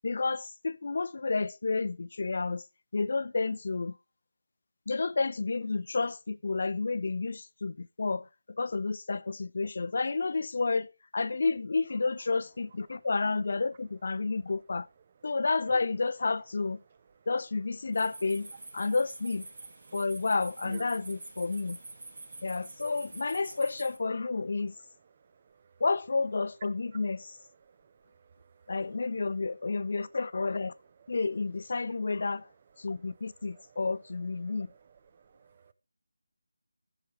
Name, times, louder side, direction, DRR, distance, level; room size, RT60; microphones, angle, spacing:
voice 1, 0.0-2.6 2.9-4.0 4.9-8.3 8.6-14.9 15.2-16.8 17.3-18.5 18.7-19.5 19.9-21.8 22.4-24.7 25.8-27.4 28.7-30.7 31.1-32.5 32.8-34.7, left 3 dB, 45° left, 0.5 m, -30 dB
sound 1, 17.9-24.0, right 2 dB, 50° right, 1.6 m, -46 dB
voice 2, 27.8-28.3 33.5-33.6 34.4-34.8 35.1-35.7, right 5 dB, 30° right, 0.6 m, -50 dB
15.0 x 7.5 x 3.2 m
figure-of-eight pair, 160°, 0 cm